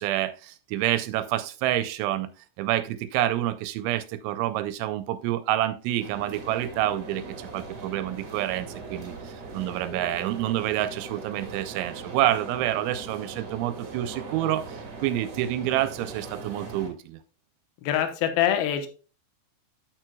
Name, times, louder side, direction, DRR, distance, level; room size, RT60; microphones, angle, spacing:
voice 1, 0.0-2.3 2.6-17.2, right 13 dB, 85° right, 12 dB, 2.9 m, -28 dB
sound 1, 6.0-16.9, right 4 dB, 55° right, 1.8 m, -40 dB
voice 2, 17.8-18.9, left 10 dB, 75° left, 7 dB, 2.2 m, -24 dB
9.0 x 8.8 x 2.2 m, 0.36 s
omnidirectional pair, 5.5 m